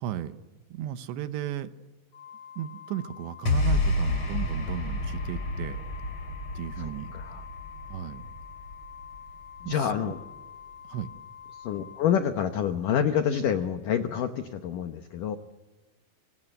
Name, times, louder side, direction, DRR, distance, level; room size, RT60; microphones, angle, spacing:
voice 1, 0.0-0.4 0.7-1.7 2.6-5.8 6.5-7.1 7.9-8.3 9.7-10.1 10.8-11.1, right 11 dB, 75° right, 11 dB, 3.1 m, -35 dB
Organ, 2.1-12.9, left 8 dB, 55° left, 7.7 m, -47 dB
sound 1, 3.5-9.9, left 2 dB, 30° left, 3.1 m, -30 dB
voice 2, 6.8-7.4 9.6-10.2 11.5-15.4, left 8 dB, 85° left, 8 dB, 1.8 m, -28 dB
28.0 x 25.0 x 7.9 m, 1.2 s
omnidirectional pair, 5.5 m